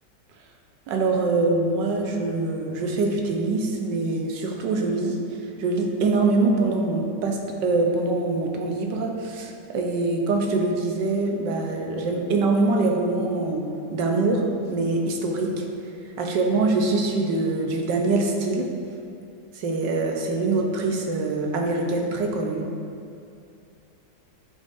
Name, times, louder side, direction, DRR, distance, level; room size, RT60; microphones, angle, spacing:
voice 1, 0.9-5.2 5.6-14.4 14.7-15.6 16.2-18.7 19.5-22.7, right 3 dB, 85° right, 1 dB, 1.4 m, -24 dB
11.0 x 3.8 x 2.6 m, 2.5 s
omnidirectional pair, 1.9 m